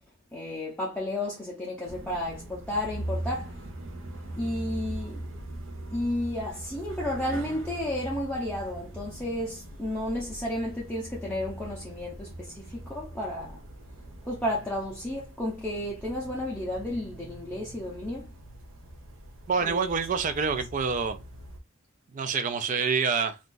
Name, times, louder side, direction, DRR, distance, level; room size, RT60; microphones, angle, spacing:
voice 1, 0.3-3.6 4.4-5.2 5.9-13.6 14.2-18.3 19.6-20.0, left 1 dB, 5° left, 0.6 m, -32 dB
sound 1, 1.8-21.6, right 1 dB, 70° right, 0.7 m, -41 dB
voice 2, 19.5-21.2 22.1-23.4, right 5 dB, 40° right, 0.4 m, -27 dB
2.5 x 2.3 x 3.7 m
head